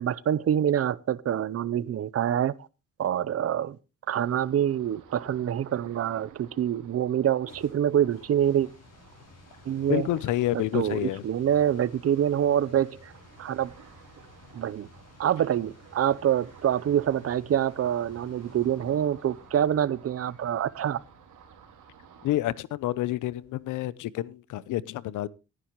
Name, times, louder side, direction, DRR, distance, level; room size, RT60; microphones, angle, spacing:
voice 1, 0.0-2.5 3.0-3.8 4.1-8.7 9.7-10.1 10.5-13.1 13.4-13.7 14.5-14.9 15.2-21.0, right 10 dB, 50° right, 0.7 m, -26 dB
Ocean, 4.1-22.3, right 6 dB, 80° right, 3.0 m, -54 dB
sound 1, 7.2-23.9, left 3 dB, 55° left, 5.6 m, -55 dB
voice 2, 9.9-11.2 22.2-25.3, left 14 dB, 85° left, 0.7 m, -28 dB
17.5 x 9.9 x 3.0 m
cardioid pair, 90°, 30 cm